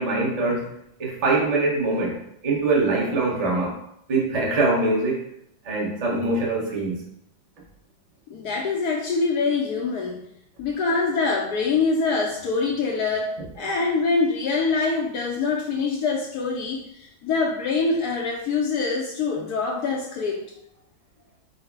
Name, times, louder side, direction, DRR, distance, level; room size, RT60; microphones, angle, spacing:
voice 1, 0.0-3.8 4.1-5.2 5.6-7.1, right 2 dB, 30° right, -3 dB, 0.6 m, -23 dB
voice 2, 8.3-10.2 10.6-20.4, left 4 dB, 80° left, -1 dB, 0.8 m, -24 dB
4.7 x 2.1 x 4.5 m, 0.74 s
omnidirectional pair, 2.2 m